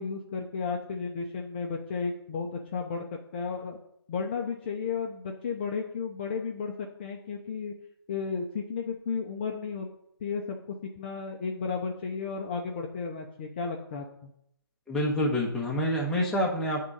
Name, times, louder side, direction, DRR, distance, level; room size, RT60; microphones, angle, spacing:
voice 1, 0.0-3.0 3.3-3.8 4.1-7.7 8.1-9.9 10.2-14.3, left 5 dB, 25° left, 1 dB, 0.6 m, -33 dB
voice 2, 14.9-16.8, equal, 5° left, -3 dB, 0.9 m, -27 dB
8.5 x 3.7 x 5.3 m, 0.75 s
figure-of-eight pair, 160°, 13 cm